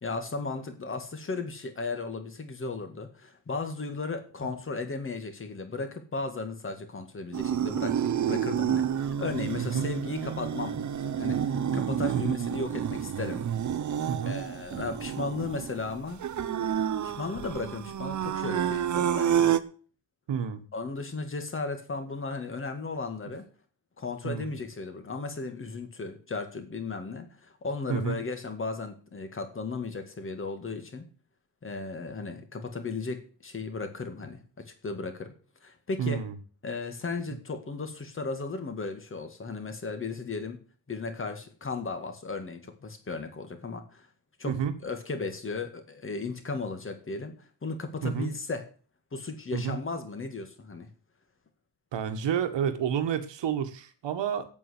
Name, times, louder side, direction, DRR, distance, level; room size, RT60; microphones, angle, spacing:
voice 1, 0.0-13.4 14.3-16.2 17.0-19.6 20.7-23.4 24.0-31.1 31.6-35.3 35.6-36.2 36.6-40.6 40.9-44.1 44.4-44.5 44.8-47.3 47.6-48.6 49.1-50.9, left 3 dB, 30° left, 7 dB, 2.1 m, -35 dB
sound 1, 7.3-19.6, right 9 dB, 45° right, 0.8 m, -29 dB
voice 2, 14.1-14.4 20.3-20.6 24.2-24.5 27.9-28.2 36.0-36.4 44.4-44.7 48.0-48.3 49.5-49.8 51.9-54.5, right 8 dB, 85° right, 9 dB, 1.8 m, -30 dB
8.8 x 8.7 x 8.0 m, 0.40 s
wide cardioid pair, 165°, 42 cm